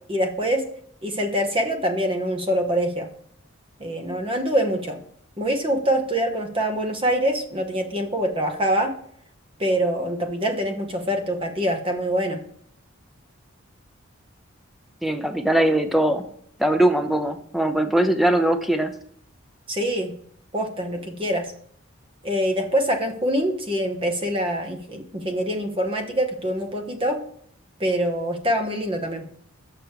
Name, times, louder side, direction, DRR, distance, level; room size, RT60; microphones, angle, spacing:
voice 1, 0.1-0.6 1.0-3.1 3.8-5.0 5.4-8.9 9.6-12.4 19.7-20.1 20.5-21.5 22.2-27.2 27.8-29.2, equal, 25° right, 4 dB, 0.9 m, -24 dB
voice 2, 15.0-16.2 16.6-18.9, right 1 dB, ahead, 7 dB, 0.5 m, -21 dB
6.7 x 6.0 x 4.6 m, 0.64 s
head